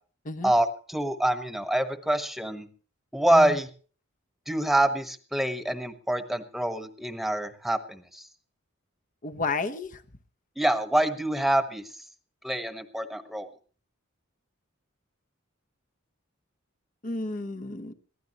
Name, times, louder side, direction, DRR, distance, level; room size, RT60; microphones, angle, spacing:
voice 1, 0.4-2.7 3.1-3.7 4.5-8.3 10.6-11.8 12.4-13.5, right 1 dB, ahead, 8 dB, 1.3 m, -26 dB
voice 2, 9.2-10.0 17.0-17.9, left 3 dB, 40° left, 9 dB, 1.1 m, -32 dB
22.5 x 15.5 x 3.1 m, 0.40 s
head